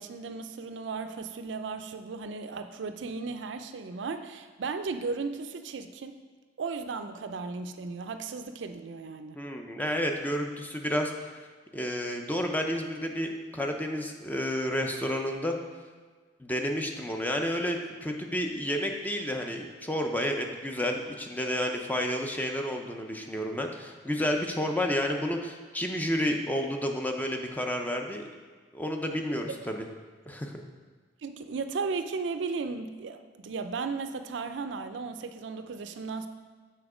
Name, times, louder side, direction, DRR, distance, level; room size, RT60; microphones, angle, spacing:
voice 1, 0.0-6.2 6.6-9.4 31.2-36.3, right 4 dB, 75° right, 8 dB, 0.4 m, -35 dB
voice 2, 9.3-11.1 11.7-15.6 16.4-28.2 28.7-29.8 30.3-30.5, equal, 10° left, 3 dB, 0.5 m, -30 dB
7.1 x 4.4 x 4.9 m, 1.5 s
head